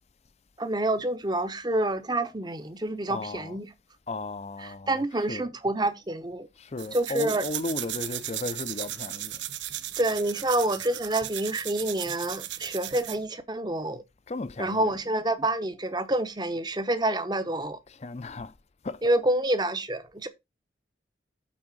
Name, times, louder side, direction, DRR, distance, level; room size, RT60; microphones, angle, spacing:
voice 1, 0.6-3.7 4.6-6.5 6.9-7.4 10.0-14.0 14.6-17.8 19.0-20.3, right 1 dB, 20° right, 0.8 m, -28 dB
voice 2, 3.1-3.6 4.1-5.5 6.6-9.4 14.3-14.9 17.9-18.5 18.8-19.1, left 2 dB, 35° left, 0.5 m, -36 dB
sound 1, 6.8-13.3, right 13 dB, 70° right, 0.7 m, -36 dB
8.5 x 3.7 x 6.0 m
head